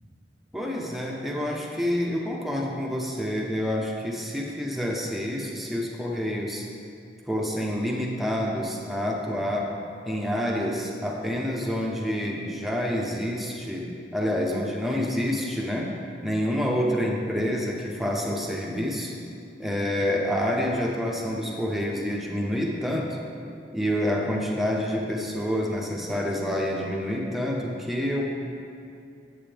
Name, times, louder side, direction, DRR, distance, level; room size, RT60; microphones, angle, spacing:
voice 1, 0.5-6.7 7.3-9.7 10.1-15.9 16.2-19.1 19.6-23.2 23.7-28.2, equal, ahead, -2 dB, 0.9 m, -28 dB
9.5 x 8.1 x 3.4 m, 2.4 s
head